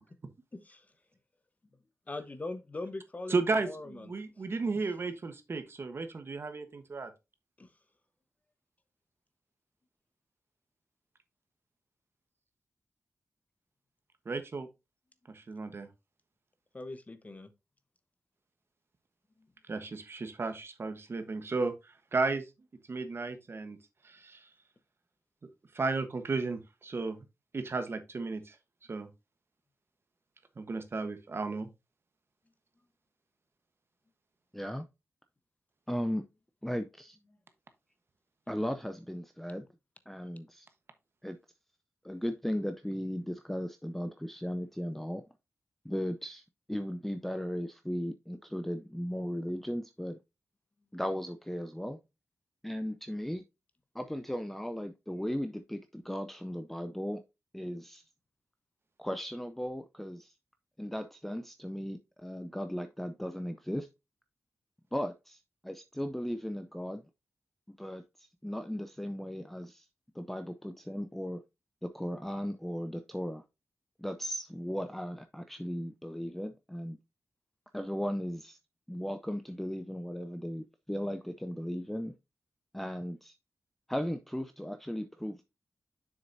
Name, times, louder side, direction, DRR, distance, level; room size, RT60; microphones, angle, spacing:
voice 1, 2.1-3.4 3.6-4.1 7.6-7.7 16.7-17.5, left 2 dB, 30° left, 1.0 m, -40 dB
voice 2, 3.3-7.1 14.2-14.7 15.3-15.9 19.7-21.7 22.1-22.4 22.9-23.8 24.0-24.5 25.7-27.2 27.5-28.5 28.9-29.1 30.6-31.7, right 3 dB, 50° right, 1.2 m, -34 dB
voice 3, 34.5-34.9 35.9-36.2 36.6-37.2 38.5-39.7 40.1-40.7 41.2-41.4 42.0-45.2 45.8-46.4 46.7-50.2 50.9-52.0 52.6-53.4 53.9-57.2 57.5-58.0 59.0-60.3 60.8-63.9 64.9-67.0 67.8-69.9 70.1-71.4 71.8-73.4 74.0-77.0 77.7-78.6 78.9-82.1 82.7-83.4 83.9-85.5, equal, 5° left, 0.5 m, -36 dB
7.2 x 6.5 x 2.7 m
wide cardioid pair, 90°, 5 cm